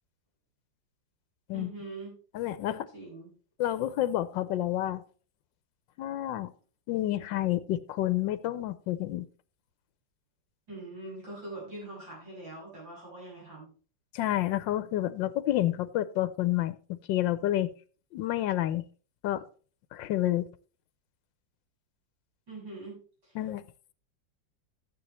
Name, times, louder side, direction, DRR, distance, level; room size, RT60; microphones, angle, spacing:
voice 1, 1.5-2.2 2.7-3.3 10.7-13.7 22.5-23.4, right 2 dB, 80° right, -5 dB, 7.5 m, -43 dB
voice 2, 2.3-2.8 3.6-5.0 6.0-6.5 6.9-9.3 14.1-17.7 18.1-18.8 19.2-19.5 19.9-20.5 23.3-23.6, left 13 dB, 85° left, 15 dB, 1.4 m, -29 dB
13.0 x 9.4 x 3.2 m, 0.38 s
omnidirectional pair, 2.0 m